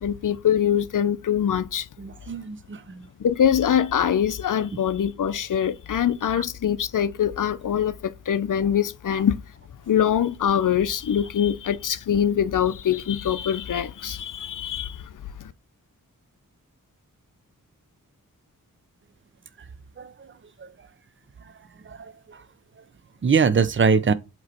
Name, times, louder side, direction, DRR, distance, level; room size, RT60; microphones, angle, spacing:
voice 1, 0.0-1.9 3.2-9.4 9.9-15.1 15.4-15.5, left 9 dB, 65° left, 0.6 m, -23 dB
voice 2, 2.0-3.1 20.0-20.1 20.6-20.7 21.9-22.4 23.2-24.1, right 5 dB, 35° right, 0.6 m, -23 dB
7.8 x 3.0 x 4.3 m
wide cardioid pair, 70°, 34 cm